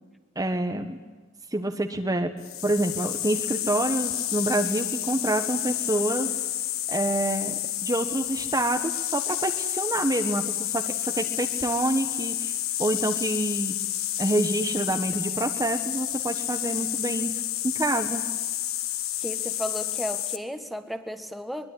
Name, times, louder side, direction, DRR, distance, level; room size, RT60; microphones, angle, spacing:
voice 1, 0.3-1.0 1.5-2.3 2.6-6.4 6.9-13.8 14.2-18.3, right 1 dB, 20° right, 4 dB, 1.2 m, -27 dB
sound 1, 2.4-20.4, left 13 dB, 80° left, 1.5 m, -30 dB
voice 2, 19.2-21.7, equal, ahead, 7 dB, 1.7 m, -34 dB
23.5 x 22.0 x 9.9 m, 1.4 s
head